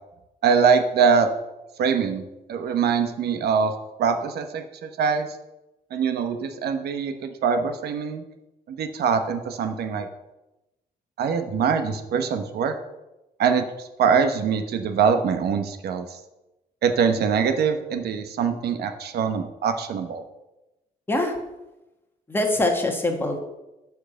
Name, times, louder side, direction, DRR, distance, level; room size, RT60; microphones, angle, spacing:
voice 1, 0.4-1.3 1.8-2.2 2.5-5.3 5.9-8.2 8.7-10.1 11.2-12.7 13.4-16.1 16.8-20.2, right 6 dB, 75° right, 7 dB, 1.1 m, -23 dB
voice 2, 22.3-23.4, left 2 dB, 15° left, 3 dB, 1.4 m, -23 dB
12.0 x 4.7 x 7.6 m, 0.98 s
cardioid pair, 175°, 17 cm